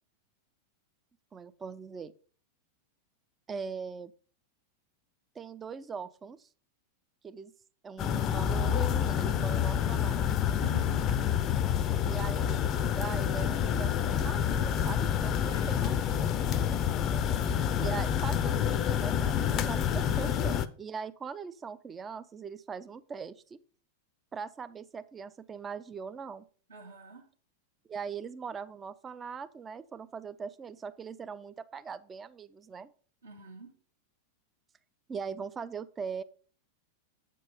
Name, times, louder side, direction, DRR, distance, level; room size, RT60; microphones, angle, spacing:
voice 1, 1.3-2.1 3.5-4.1 5.3-6.5 7.2-7.5 7.8-10.2 12.0-16.3 17.8-23.6 24.3-26.4 27.9-32.9 35.1-36.2, right 6 dB, 20° right, 13 dB, 0.6 m, -41 dB
sound 1, 8.0-20.7, left 9 dB, 30° left, 0.6 m, -28 dB
voice 2, 10.5-11.0 15.5-15.7 20.0-20.3 26.7-27.2 33.2-33.7, right 4 dB, 75° right, 0 dB, 2.6 m, -46 dB
8.7 x 5.4 x 5.2 m, 0.42 s
figure-of-eight pair, 90°, 0 cm